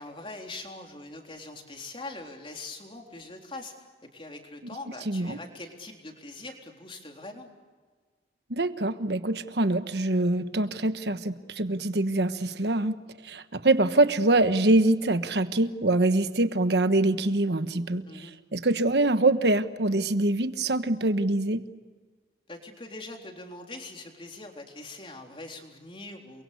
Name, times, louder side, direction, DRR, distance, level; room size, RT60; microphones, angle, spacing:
voice 1, 0.0-3.7 4.1-7.5 18.1-18.3 22.5-26.4, left 2 dB, 30° left, 2 dB, 3.8 m, -42 dB
voice 2, 5.1-5.4 8.5-13.0 13.2-21.6, right 2 dB, 65° right, 10 dB, 1.3 m, -24 dB
29.5 x 23.5 x 8.4 m, 1.4 s
head